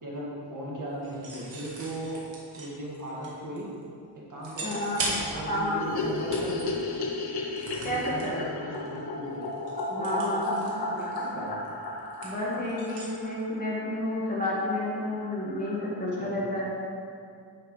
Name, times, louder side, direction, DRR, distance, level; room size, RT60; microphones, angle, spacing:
voice 1, 0.0-2.2 2.6-3.7 4.3-6.8 7.8-9.5 10.0-11.6 16.2-16.4, right 1 dB, 45° right, -6 dB, 2.0 m, -37 dB
sound 1, 1.0-3.8 4.4-5.7 6.0-6.7 7.6-8.3 8.7-9.0 9.3-13.1, right 2 dB, 85° right, 1.8 m, -38 dB
voice 2, 4.6-5.0 5.3-5.8 7.8-8.4 9.9-10.5 12.2-16.7, left 1 dB, 20° left, -7 dB, 1.8 m, -30 dB
sound 2, 5.8-14.0 14.3-14.4 14.6-14.7 15.0-15.1 15.3-15.9, left 2 dB, 60° left, 1.0 m, -34 dB
9.4 x 6.4 x 3.3 m, 2.2 s
wide cardioid pair, 125°, 43 cm